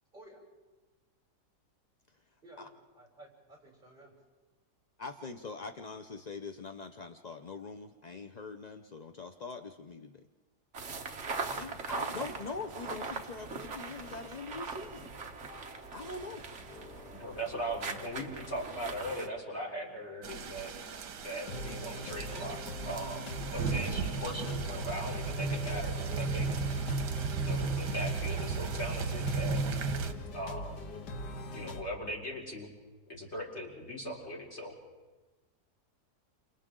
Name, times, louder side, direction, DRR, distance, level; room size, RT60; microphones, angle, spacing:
voice 1, 0.1-0.4 2.4-2.7 2.9-4.1, right 1 dB, 30° right, -2 dB, 6.8 m, -54 dB
voice 2, 5.0-10.3 11.5-15.1 15.9-16.4, left 4 dB, 60° left, 6 dB, 0.4 m, -43 dB
sound 1, 10.7-19.3, right 4 dB, 45° right, 1.5 m, -40 dB
sound 2, 15.1-16.3 16.6-20.9 21.5-31.8, left 1 dB, 90° left, 2.0 m, -43 dB
voice 3, 17.1-20.7 21.2-26.5 27.3-29.6 30.3-30.8 31.5-32.7 33.1-34.7, equal, 40° left, -2 dB, 3.9 m, -39 dB
sound 3, 20.2-30.1, right 4 dB, 80° right, 1.7 m, -35 dB
29.5 x 27.5 x 3.8 m, 1.2 s
omnidirectional pair, 1.8 m